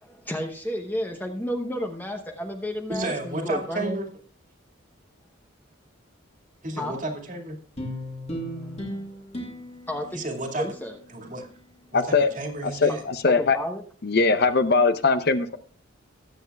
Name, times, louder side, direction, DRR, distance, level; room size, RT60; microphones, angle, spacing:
voice 1, 0.0-4.0 6.8-7.0 8.6-8.7 9.9-10.2 10.6-11.0 12.9-13.0 13.3-13.8, equal, 10° left, 3 dB, 0.9 m, -31 dB
voice 2, 2.9-4.1 6.6-7.6 10.1-10.7 11.1-11.5 11.9-13.0, right 2 dB, 40° right, 2 dB, 2.2 m, -32 dB
sound 1, 7.8-12.4, equal, 30° left, 2.4 m, -38 dB
voice 3, 11.9-12.3 12.6-13.6 14.0-15.6, left 4 dB, 50° left, 10 dB, 0.7 m, -21 dB
20.5 x 8.1 x 2.3 m, 0.43 s
head